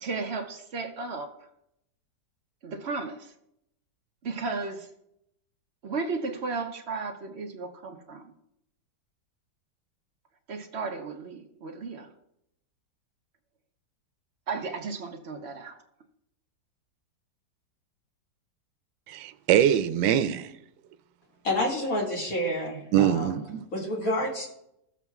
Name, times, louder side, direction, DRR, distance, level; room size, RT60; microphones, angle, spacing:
voice 1, 0.0-1.3 2.6-3.3 4.2-4.9 5.8-8.3 10.5-12.1 14.5-15.8, right 4 dB, 50° right, 0.8 m, -34 dB
voice 2, 19.1-20.5 22.9-23.6, right 10 dB, 90° right, 1.3 m, -23 dB
voice 3, 21.4-23.4 23.7-24.5, left 1 dB, 50° left, 2.6 m, -29 dB
15.5 x 7.2 x 2.3 m
omnidirectional pair, 1.9 m